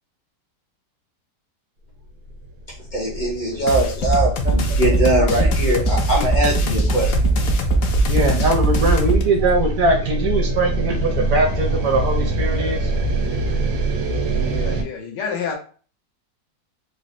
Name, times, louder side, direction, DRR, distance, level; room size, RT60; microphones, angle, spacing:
sound 1, 2.3-14.8, right 1 dB, 90° right, 1.3 m, -25 dB
voice 1, 2.9-7.5, right 1 dB, 50° left, -3 dB, 0.5 m, -22 dB
sound 2, 3.7-9.2, right 2 dB, 70° left, 0.9 m, -20 dB
voice 2, 8.1-12.9, right 2 dB, 70° right, 2 dB, 0.9 m, -21 dB
voice 3, 14.3-15.6, left 6 dB, 85° left, 1 dB, 1.4 m, -29 dB
3.9 x 2.0 x 2.5 m, 0.40 s
omnidirectional pair, 1.8 m